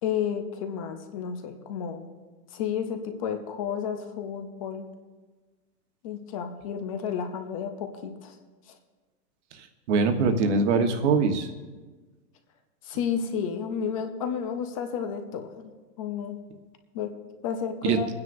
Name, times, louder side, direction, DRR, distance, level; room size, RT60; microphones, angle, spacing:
voice 1, 0.0-2.0 2.5-4.9 6.0-8.4 8.7-8.8 12.8-16.4 16.9-17.2 17.4-18.1, left 7 dB, 20° left, 7 dB, 0.5 m, -32 dB
voice 2, 9.5-11.5 17.8-18.0, right 4 dB, 45° right, 6 dB, 1.3 m, -23 dB
28.0 x 9.6 x 2.6 m, 1.3 s
hypercardioid pair, 160°, 49 cm